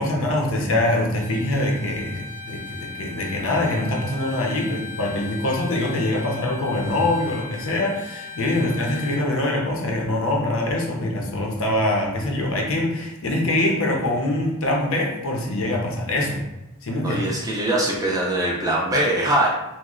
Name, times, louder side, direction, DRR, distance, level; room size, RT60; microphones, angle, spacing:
voice 1, 0.0-16.5 16.8-17.3, left 1 dB, 65° left, 0 dB, 0.6 m, -24 dB
Bowed string instrument, 1.1-9.3, left 4 dB, 85° right, 0.7 m, -38 dB
voice 2, 17.0-19.5, right 1 dB, 15° right, -2 dB, 0.4 m, -22 dB
3.0 x 2.1 x 3.6 m, 0.96 s
head